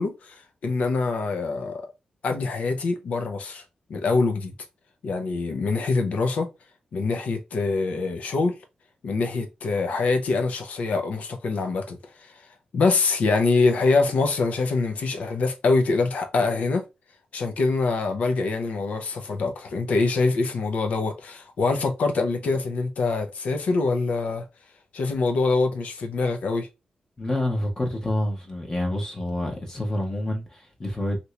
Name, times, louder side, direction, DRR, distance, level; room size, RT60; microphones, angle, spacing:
voice 1, 0.0-1.9 2.2-3.6 3.9-4.5 5.0-6.5 6.9-8.6 9.0-16.8 17.3-24.5 24.9-26.7, left 3 dB, 65° left, 0.7 m, -24 dB
voice 2, 27.2-31.2, left 1 dB, 20° left, 0.8 m, -28 dB
2.9 x 2.6 x 3.1 m
wide cardioid pair, 170°, 3 cm